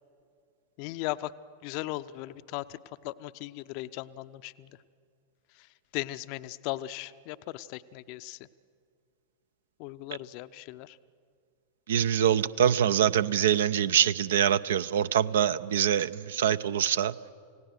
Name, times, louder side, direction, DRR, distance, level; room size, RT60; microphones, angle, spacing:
voice 1, 0.8-1.3 1.6-2.8 3.0-4.7 5.9-8.4 9.8-11.0, left 17 dB, 45° left, 14 dB, 0.5 m, -37 dB
voice 2, 11.9-17.1, right 9 dB, 60° right, 16 dB, 0.5 m, -24 dB
29.0 x 17.0 x 6.4 m, 2.3 s
figure-of-eight pair, 90°, 0 cm